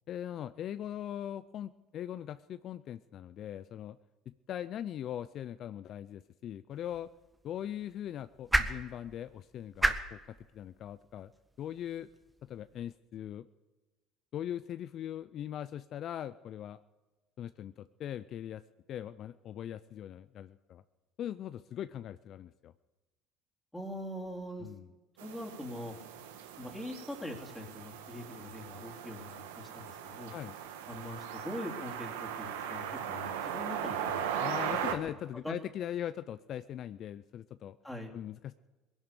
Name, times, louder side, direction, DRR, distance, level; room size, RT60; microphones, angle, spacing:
voice 1, 0.1-4.0 4.3-7.1 7.4-10.2 10.5-11.3 11.6-12.1 12.4-13.5 14.3-16.8 17.4-18.6 18.9-20.8 21.2-22.7 24.6-24.9 30.3-30.5 34.4-37.8 38.1-38.5, left 10 dB, 50° left, 14 dB, 0.4 m, -40 dB
sound 1, 6.7-12.9, right 2 dB, 10° right, 1.3 m, -36 dB
voice 2, 23.7-26.0 26.6-30.3 30.9-34.2 34.7-34.8 35.3-35.5 37.8-38.1, left 1 dB, 5° left, 0 dB, 3.0 m, -43 dB
sound 2, 25.2-34.9, right 9 dB, 90° right, 1.3 m, -38 dB
19.5 x 11.0 x 6.7 m, 1.2 s
supercardioid pair, 85°, 0 cm